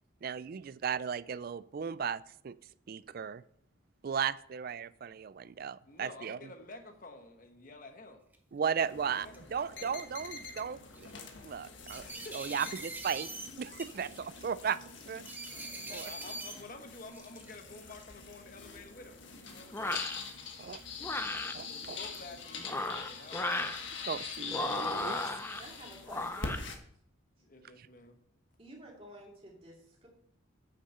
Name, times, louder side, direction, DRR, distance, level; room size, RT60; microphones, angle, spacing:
voice 1, 0.2-2.5 2.9-3.4 4.0-6.5 8.5-11.1 11.4-12.1 12.3-13.3 13.6-15.2 15.9-16.1 19.9-20.0 20.6-20.8 21.5-22.0 24.1-25.2, right 7 dB, 45° right, 17 dB, 0.3 m, -36 dB
voice 2, 5.8-8.2 9.0-10.1 12.0-12.7 15.5-19.9 21.6-23.8 27.4-28.2, left 2 dB, 40° left, 6 dB, 1.2 m, -51 dB
sound 1, 8.3-8.4 9.1-9.6 10.4-10.6 10.9-11.2 11.9-13.5 13.8-14.4 15.2-16.5 17.1-17.6, right 2 dB, 10° right, 0.9 m, -43 dB
sound 2, 8.8-26.8, left 5 dB, 65° left, 1.4 m, -44 dB
sound 3, 19.7-20.2 21.0-21.5 22.6-23.8 24.5-25.6 26.1-26.6, left 2 dB, 10° left, 0.5 m, -35 dB
voice 3, 25.6-26.6 27.4-27.5 28.6-30.1, right 1 dB, 30° right, -2 dB, 2.4 m, -52 dB
8.5 x 6.6 x 5.5 m, 0.67 s
head